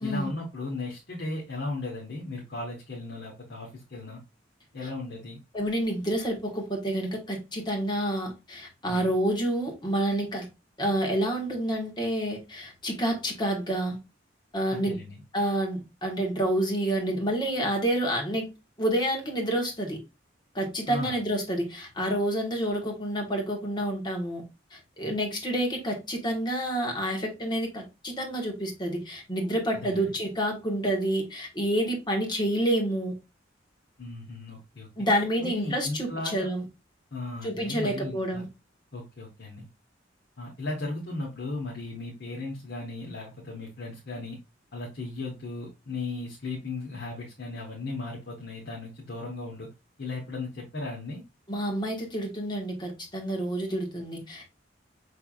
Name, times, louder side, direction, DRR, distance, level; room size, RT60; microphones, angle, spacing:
voice 1, 0.0-4.2 4.7-5.4 8.9-9.1 14.7-15.2 20.9-21.2 29.7-30.1 34.0-34.9 35.1-36.5 37.1-38.5 38.9-39.6 40.4-44.4 44.7-49.7 50.0-51.2, left 2 dB, 60° left, 1.2 m, -36 dB
voice 2, 5.5-10.5 10.8-14.0 14.5-15.0 15.3-18.5 18.8-20.0 20.5-24.4 24.7-33.1 35.0-36.6 37.4-38.5 51.5-54.5, right 1 dB, 25° left, 1.5 m, -28 dB
5.7 x 3.4 x 2.4 m
head